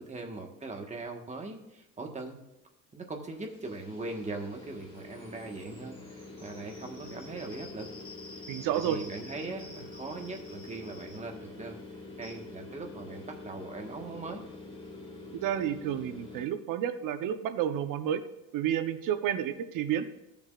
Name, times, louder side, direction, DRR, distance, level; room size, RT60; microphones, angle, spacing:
voice 1, 0.0-2.4 2.9-7.9 8.7-11.8 12.2-14.4, right 3 dB, 20° right, 3 dB, 1.5 m, -40 dB
sound 1, 3.3-16.5, left 2 dB, 15° left, 3.2 m, -46 dB
voice 2, 8.5-9.0 15.3-18.2 18.5-20.0, right 10 dB, 70° right, 10 dB, 0.9 m, -30 dB
15.0 x 7.1 x 2.5 m, 0.93 s
cardioid pair, 125°, 34 cm